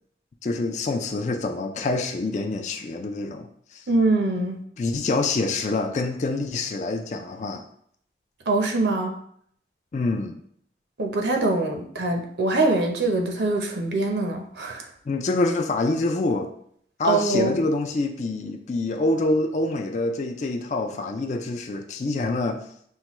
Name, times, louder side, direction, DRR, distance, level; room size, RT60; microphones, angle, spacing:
voice 1, 0.4-3.8 4.8-7.6 9.9-10.4 15.1-16.5 17.0-22.6, left 2 dB, 40° left, 4 dB, 0.3 m, -26 dB
voice 2, 3.9-4.6 8.5-9.1 11.0-14.9 17.0-17.6, right 2 dB, 75° right, 3 dB, 0.6 m, -23 dB
5.6 x 2.2 x 3.0 m, 0.66 s
head